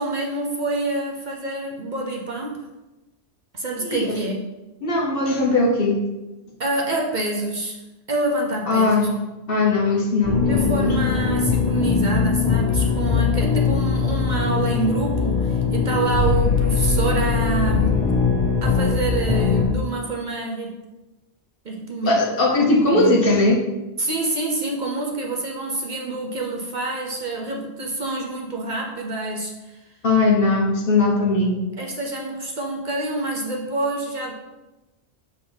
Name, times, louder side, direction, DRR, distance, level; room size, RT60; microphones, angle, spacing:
voice 1, 0.0-2.6 3.5-4.4 6.6-7.8 8.1-9.1 10.5-18.0 18.6-20.7 21.6-22.2 22.6-23.2 24.0-29.8 31.8-34.3, right 2 dB, 50° right, 0 dB, 0.8 m, -27 dB
voice 2, 3.8-4.2 4.8-6.0 8.7-9.1 9.5-11.0 22.0-23.6 30.0-31.6, left 2 dB, 55° left, -1 dB, 1.2 m, -19 dB
sound 1, 10.2-19.6, left 5 dB, 20° left, 1.7 m, -21 dB
7.1 x 4.0 x 3.4 m, 1.0 s
omnidirectional pair, 1.2 m